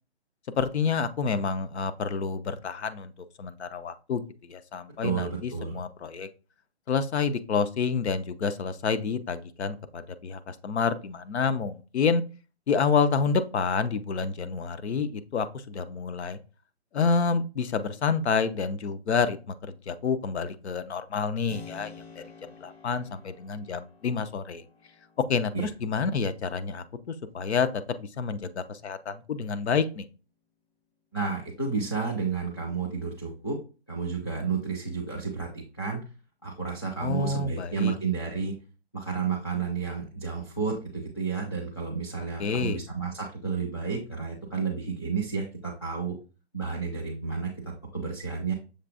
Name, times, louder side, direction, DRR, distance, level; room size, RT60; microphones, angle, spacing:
voice 1, 0.6-3.1 3.4-6.3 6.9-12.2 12.7-16.4 16.9-22.2 22.6-24.6 25.3-27.7 28.0-30.0 37.0-37.9 42.4-42.8, left 5 dB, 85° left, 12 dB, 0.6 m, -28 dB
voice 2, 5.0-5.8 25.5-25.7 31.1-33.6 33.9-36.0 36.4-38.5 38.9-46.1 46.5-48.5, right 5 dB, 25° left, -1 dB, 0.4 m, -31 dB
Keyboard (musical), 21.5-30.0, left 5 dB, 70° left, 1.1 m, -52 dB
6.6 x 3.3 x 2.4 m, 0.33 s
hypercardioid pair, 175°, 32 cm